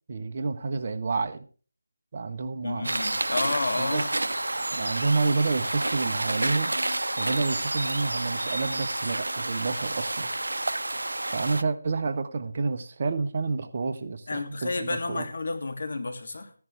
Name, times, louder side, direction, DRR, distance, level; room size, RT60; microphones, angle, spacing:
voice 1, 0.1-1.4 2.1-2.9 3.8-4.1 4.7-6.7 7.2-10.3 11.3-15.2, right 4 dB, 40° right, 7 dB, 1.2 m, -29 dB
voice 2, 2.6-4.3 14.3-16.5, left 3 dB, 55° left, 7 dB, 2.8 m, -31 dB
sound 1, 2.8-11.6, right 2 dB, 75° right, 0.7 m, -29 dB
15.0 x 11.0 x 3.5 m, 0.39 s
figure-of-eight pair, 160°, 0 cm